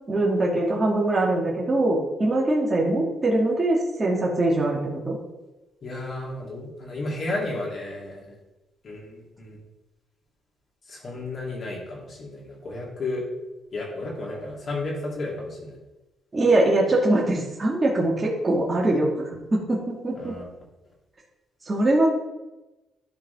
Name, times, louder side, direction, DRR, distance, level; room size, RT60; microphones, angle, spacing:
voice 1, 0.1-5.2 16.3-20.4 21.6-22.1, right 2 dB, 25° right, -4 dB, 2.0 m, -22 dB
voice 2, 5.8-8.3 8.8-9.6 10.9-13.2 13.7-15.8 20.1-20.5, left 2 dB, 50° left, -3 dB, 3.2 m, -33 dB
12.0 x 4.9 x 3.6 m, 1.0 s
cardioid pair, 90°, 0 cm